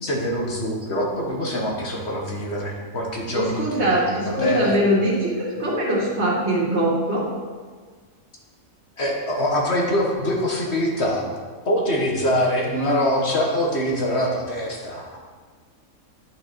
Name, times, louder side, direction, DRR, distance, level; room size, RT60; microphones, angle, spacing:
voice 1, 0.0-3.9 4.2-4.8 9.0-11.3 11.6-15.2, equal, 50° left, -1 dB, 1.6 m, -24 dB
voice 2, 3.3-7.3, right 1 dB, 50° right, -4 dB, 2.3 m, -22 dB
11.0 x 5.9 x 4.4 m, 1.5 s
omnidirectional pair, 1.5 m